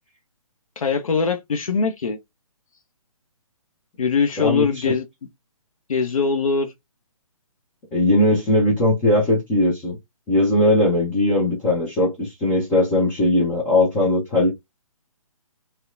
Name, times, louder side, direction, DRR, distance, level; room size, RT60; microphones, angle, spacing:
voice 1, 0.8-2.2 4.0-5.0 5.9-6.7, left 5 dB, 65° left, 0.5 m, -22 dB
voice 2, 4.4-4.9 7.9-10.0 10.3-14.5, left 1 dB, 10° left, 0.3 m, -19 dB
2.7 x 2.1 x 2.2 m
figure-of-eight pair, 135°, 18 cm